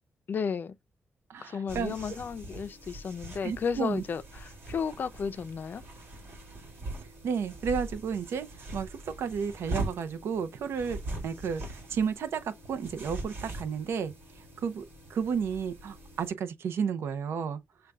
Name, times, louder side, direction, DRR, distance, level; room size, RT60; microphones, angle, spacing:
voice 1, 0.3-0.8 1.4-5.8, left 6 dB, 50° left, 0.4 m, -33 dB
voice 2, 1.3-1.9 3.4-4.0 7.2-11.0 11.2-14.8 15.1-17.6, right 6 dB, 80° right, 0.6 m, -32 dB
sound 1, 1.7-16.3, right 2 dB, 60° right, 2.3 m, -42 dB
6.5 x 2.3 x 2.3 m
cardioid pair, 110°, 4 cm